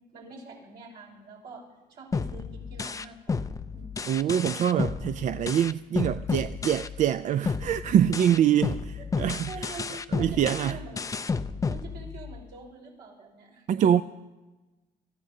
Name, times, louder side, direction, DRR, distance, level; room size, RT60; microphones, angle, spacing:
voice 1, 0.1-4.2 7.9-8.1 9.0-9.1 9.5-11.1 11.6-13.6, right 4 dB, 75° right, 5.0 m, -45 dB
sound 1, 2.1-7.2 7.5-12.5, left 4 dB, 20° left, 0.4 m, -32 dB
voice 2, 4.1-8.8 9.2-9.7 10.1-10.8 13.7-14.0, right 10 dB, 45° right, 0.4 m, -24 dB
26.0 x 14.0 x 2.8 m
cardioid pair, 110°, 17 cm